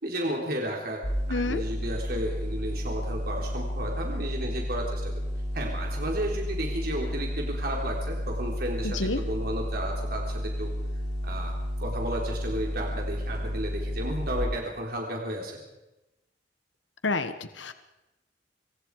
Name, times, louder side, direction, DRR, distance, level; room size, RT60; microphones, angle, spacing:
voice 1, 0.0-1.0 1.3-5.2 5.5-10.7 11.2-11.5 11.8-15.6, right 1 dB, 55° right, 0 dB, 3.8 m, -33 dB
sound 1, 1.0-14.4, equal, 40° left, 7.8 m, -32 dB
voice 2, 1.3-1.6 8.8-9.2 17.0-17.7, left 3 dB, 85° left, 10 dB, 1.4 m, -29 dB
26.5 x 25.5 x 4.9 m, 0.97 s
head